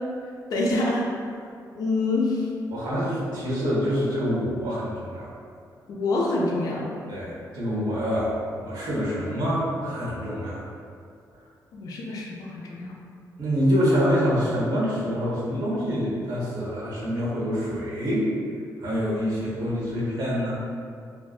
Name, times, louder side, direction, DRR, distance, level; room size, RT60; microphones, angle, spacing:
voice 1, 0.5-1.1 1.7-2.5 5.9-6.9 11.7-12.9, left 2 dB, 60° left, -3 dB, 0.4 m, -26 dB
voice 2, 2.7-5.3 7.1-10.6 13.4-18.3 18.8-20.6, equal, 85° right, -6 dB, 0.8 m, -26 dB
2.6 x 2.1 x 2.3 m, 2.3 s
wide cardioid pair, 150°, 7 cm